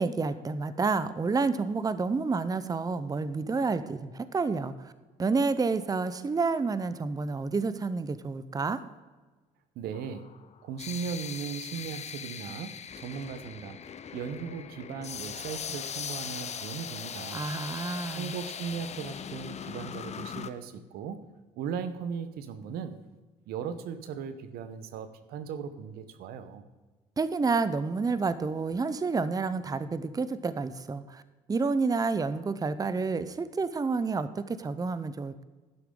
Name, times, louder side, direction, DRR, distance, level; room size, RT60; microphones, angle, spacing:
voice 1, 0.0-4.9 5.2-8.8 17.3-18.3 27.2-31.2 31.5-35.4, right 4 dB, 25° right, 13 dB, 0.7 m, -29 dB
voice 2, 9.8-10.2 10.6-13.8 14.1-17.5 18.2-21.2 21.6-23.0 23.5-26.6, right 7 dB, 75° right, 11 dB, 1.0 m, -37 dB
sound 1, 9.9-20.5, left 7 dB, 45° left, 0.8 m, -40 dB
11.5 x 10.5 x 3.8 m, 1.3 s
supercardioid pair, 70°, 16 cm